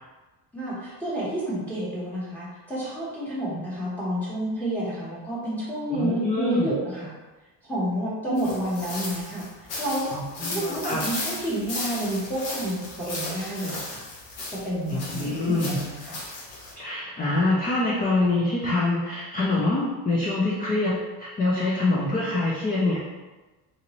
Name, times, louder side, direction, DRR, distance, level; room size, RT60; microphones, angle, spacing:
voice 1, 0.5-7.1 7.7-9.5 9.8-10.1 10.4-14.0 14.5-16.2, right 1 dB, 5° left, -9 dB, 1.2 m, -29 dB
voice 2, 5.9-6.7 10.1-11.0 14.9-15.8 16.8-23.0, left 2 dB, 20° left, -5 dB, 0.4 m, -25 dB
sound 1, 8.4-16.7, left 2 dB, 80° left, 1.2 m, -35 dB
4.0 x 2.5 x 2.9 m, 1.2 s
cardioid pair, 155°, 43 cm